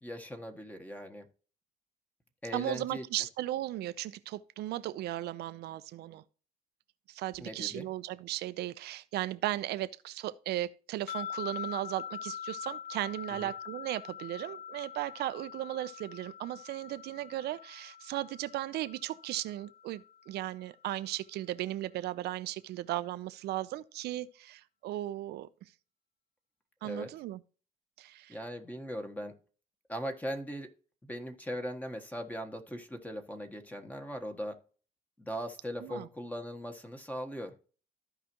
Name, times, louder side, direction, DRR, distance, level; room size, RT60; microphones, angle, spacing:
voice 1, 0.0-1.3 2.4-3.0 7.4-7.9 13.3-13.5 26.8-27.1 28.3-29.3 29.9-30.7 31.0-34.5 35.2-37.7, equal, 10° left, 1.3 m, -39 dB
voice 2, 2.5-6.2 7.1-25.5 26.8-27.4 28.0-28.4 35.8-36.1, right 14 dB, 75° right, 0.7 m, -36 dB
sound 1, 11.1-20.3, left 9 dB, 65° left, 0.7 m, -44 dB
14.5 x 5.0 x 3.0 m
cardioid pair, 110°, 17 cm